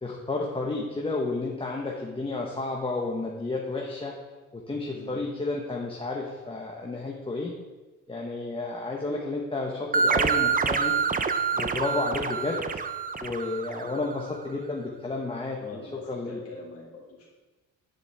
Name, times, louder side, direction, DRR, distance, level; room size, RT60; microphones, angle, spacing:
voice 1, 0.0-4.1 4.5-7.5 8.1-10.9 11.6-12.6 13.2-15.8 16.1-16.4, left 3 dB, 20° left, -1 dB, 1.2 m, -31 dB
voice 2, 4.9-5.2 11.5-11.8 13.8-13.9 15.6-17.3, left 3 dB, 55° left, -5 dB, 2.1 m, -44 dB
sound 1, 9.9-14.3, right 5 dB, 30° right, 0.6 m, -27 dB
10.0 x 8.3 x 3.5 m, 1.2 s
cardioid pair, 90°, 30 cm